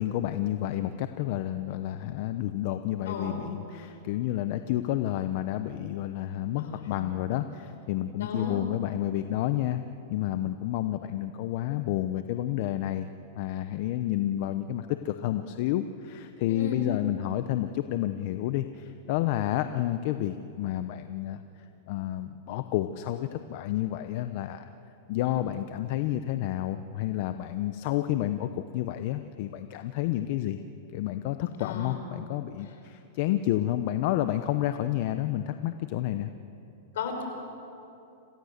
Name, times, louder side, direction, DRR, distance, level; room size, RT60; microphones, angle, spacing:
voice 1, 0.0-9.8 10.1-13.1 13.3-21.4 21.9-24.7 25.1-30.6 30.9-36.3, left 13 dB, 55° left, 9 dB, 0.8 m, -30 dB
voice 2, 3.0-3.5 6.6-6.9 8.2-8.6 16.5-16.8 31.6-32.0 36.9-37.2, left 5 dB, 75° left, 4 dB, 4.7 m, -35 dB
27.5 x 16.5 x 6.7 m, 2.9 s
hypercardioid pair, 130°, 0 cm